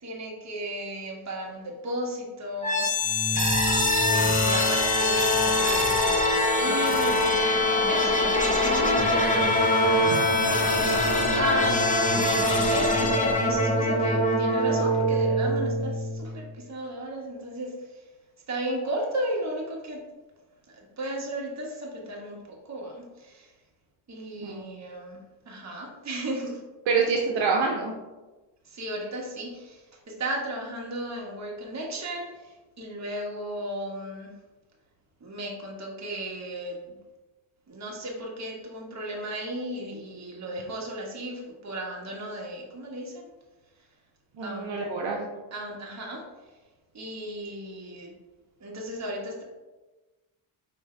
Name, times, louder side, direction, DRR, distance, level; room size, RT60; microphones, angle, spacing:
voice 1, 0.0-2.9 4.0-11.8 12.7-17.7 18.5-20.0 20.7-23.5 24.1-26.6 28.6-34.3 35.2-37.0 37.7-43.3 44.4-44.7 45.5-46.2 46.9-48.1 48.6-49.4, right 1 dB, 35° right, -1 dB, 1.3 m, -35 dB
sound 1, 2.6-16.5, left 1 dB, 15° left, 0.8 m, -23 dB
voice 2, 24.4-24.7 26.9-27.9 44.4-45.3, right 5 dB, 65° right, -2 dB, 0.8 m, -26 dB
4.9 x 3.2 x 3.2 m, 1.2 s
cardioid pair, 95°, 49 cm